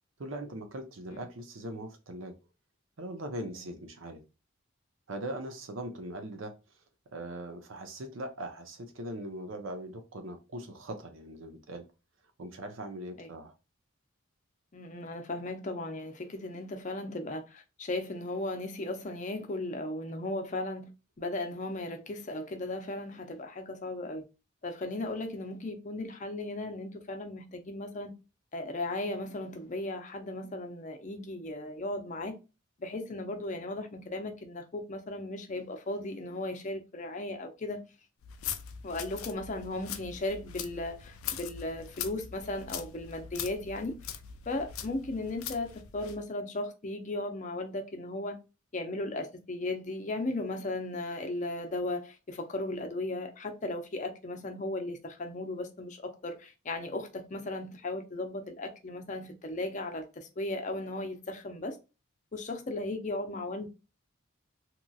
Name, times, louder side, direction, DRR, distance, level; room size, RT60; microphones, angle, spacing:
voice 1, 0.2-2.3 3.0-4.2 5.1-6.5 7.1-11.8 12.4-13.5, right 1 dB, 70° right, 0.7 m, -40 dB
voice 2, 14.7-20.9 21.2-24.2 24.6-28.1 28.5-32.4 32.8-37.8 38.8-44.0 44.5-48.4 48.7-61.8 62.3-63.7, left 2 dB, 35° left, 0.5 m, -36 dB
sound 1, 38.2-46.2, left 8 dB, 90° left, 0.4 m, -41 dB
2.9 x 2.6 x 2.3 m
head